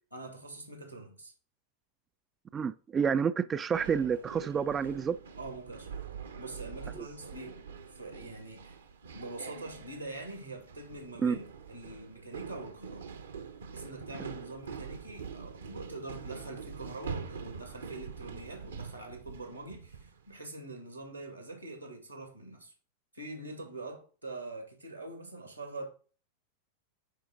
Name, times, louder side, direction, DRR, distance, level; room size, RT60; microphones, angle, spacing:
voice 1, 0.1-1.3 5.4-6.1 6.4-7.6 7.9-8.8 9.1-13.1 13.7-22.7 23.1-25.8, right 2 dB, 90° right, 2.4 m, -44 dB
voice 2, 2.5-5.2 11.2-11.4, right 6 dB, 20° right, 0.3 m, -29 dB
sound 1, 3.7-20.2, right 6 dB, 70° right, 1.0 m, -44 dB
9.1 x 4.4 x 3.8 m
figure-of-eight pair, 90°, 0 cm